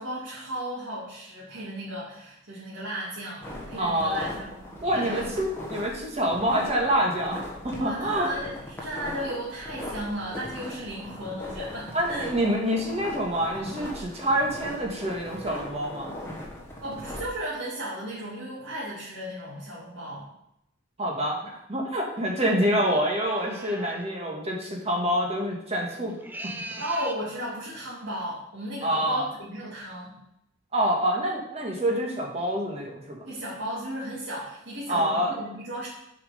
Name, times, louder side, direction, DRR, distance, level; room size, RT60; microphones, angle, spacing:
voice 1, 0.0-4.6 4.9-5.3 7.8-12.2 16.8-20.3 26.8-30.1 33.2-35.9, right 1 dB, 85° right, -8 dB, 2.5 m, -35 dB
sound 1, 3.4-17.3, left 1 dB, 15° left, 1.4 m, -39 dB
voice 2, 3.8-4.3 4.8-8.3 11.9-16.1 21.0-26.2 28.8-29.3 30.7-33.2 34.9-35.3, equal, 35° right, 0 dB, 1.6 m, -26 dB
sound 2, 22.8-24.0 26.1-27.2, right 1 dB, 10° right, 0.4 m, -39 dB
7.0 x 4.8 x 5.1 m, 0.83 s
head